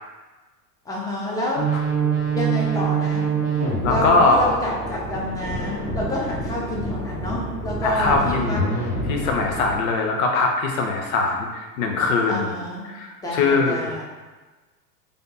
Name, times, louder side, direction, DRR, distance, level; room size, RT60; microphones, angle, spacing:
voice 1, 0.8-1.7 2.3-3.2 3.9-8.6 12.3-12.8 13.2-14.0, left 1 dB, 5° left, -5 dB, 0.8 m, -28 dB
sound 1, 1.6-9.7, right 4 dB, 35° left, 1.3 m, -25 dB
voice 2, 3.8-4.5 7.8-8.7 9.1-12.5 12.8-13.9, left 3 dB, 55° left, 1 dB, 0.8 m, -21 dB
3.3 x 2.7 x 4.1 m, 1.2 s
hypercardioid pair, 95°, 49 cm